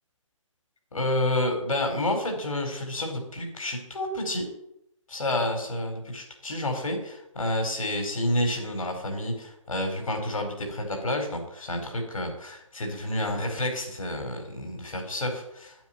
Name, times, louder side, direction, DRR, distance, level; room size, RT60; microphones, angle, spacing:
voice 1, 0.9-4.5 5.1-15.9, left 1 dB, 85° left, 4 dB, 4.4 m, -29 dB
10.5 x 9.3 x 9.2 m, 0.81 s
hypercardioid pair, 160°, 17 cm